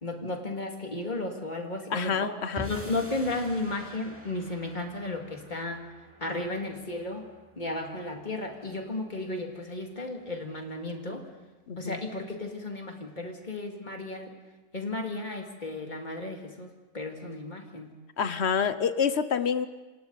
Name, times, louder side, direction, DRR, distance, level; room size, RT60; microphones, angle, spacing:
voice 1, 0.0-2.3 2.7-5.9 6.2-7.3 7.6-11.3 11.8-14.3 14.7-17.9, left 2 dB, 30° left, 2 dB, 2.5 m, -34 dB
voice 2, 1.9-2.7 11.7-12.0 18.2-19.7, left 6 dB, 55° left, 12 dB, 1.0 m, -27 dB
sound 1, 2.6-8.9, equal, 10° right, 2.4 m, -46 dB
28.0 x 26.0 x 4.1 m, 1.2 s
omnidirectional pair, 1.5 m